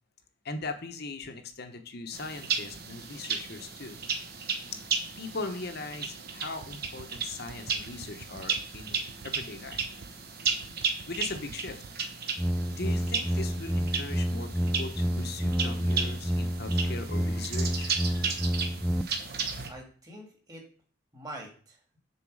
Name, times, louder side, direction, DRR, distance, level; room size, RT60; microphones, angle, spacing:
voice 1, 0.4-4.0 5.2-9.8 11.1-11.8 12.7-18.5, left 3 dB, 50° left, 6 dB, 1.0 m, -40 dB
sound 1, 2.1-19.7, right 5 dB, 45° right, 1.0 m, -35 dB
sound 2, 6.6-10.1 10.4-11.9 13.1-13.4, right 4 dB, 75° right, 0.6 m, -49 dB
sound 3, 12.4-19.0, equal, ahead, 0.3 m, -29 dB
voice 2, 19.7-20.6 21.1-22.0, right 1 dB, 20° right, 0 dB, 1.7 m, -45 dB
7.1 x 4.4 x 6.3 m, 0.43 s
head